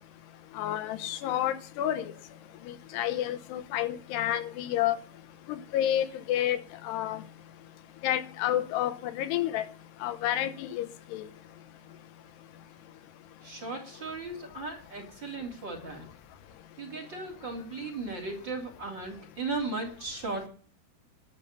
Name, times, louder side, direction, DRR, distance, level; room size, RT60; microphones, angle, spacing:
voice 1, 0.5-2.1 2.7-5.0 5.5-7.2 8.0-9.7 10.0-11.3, left 12 dB, 80° left, 2.9 m, -30 dB
voice 2, 13.4-16.1 16.8-20.5, right 3 dB, 30° right, 3.1 m, -36 dB
12.5 x 6.8 x 8.1 m
omnidirectional pair, 4.9 m